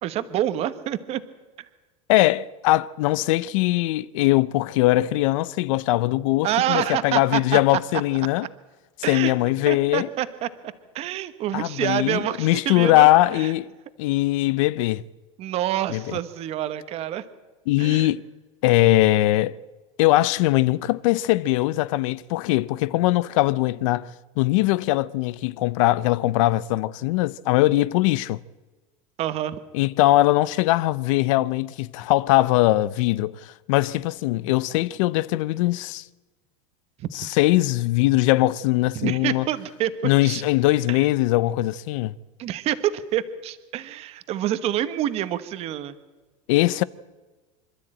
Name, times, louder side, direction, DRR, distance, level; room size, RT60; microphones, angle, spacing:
voice 1, 0.0-1.2 6.4-7.6 9.0-9.3 9.7-10.5 10.9-13.5 15.4-17.2 17.8-18.1 29.2-29.6 37.0-37.1 38.9-40.4 40.9-41.0 42.4-45.9, right 12 dB, 35° right, 1.1 m, -27 dB
voice 2, 2.1-8.5 9.1-10.1 11.5-13.7 14.0-15.0 15.9-16.1 17.7-18.2 18.6-19.6 20.0-28.4 29.7-36.0 37.1-39.5 40.0-42.1 46.5-46.8, left 17 dB, 65° left, 0.6 m, -21 dB
26.0 x 12.5 x 8.8 m
supercardioid pair, 155°, 18 cm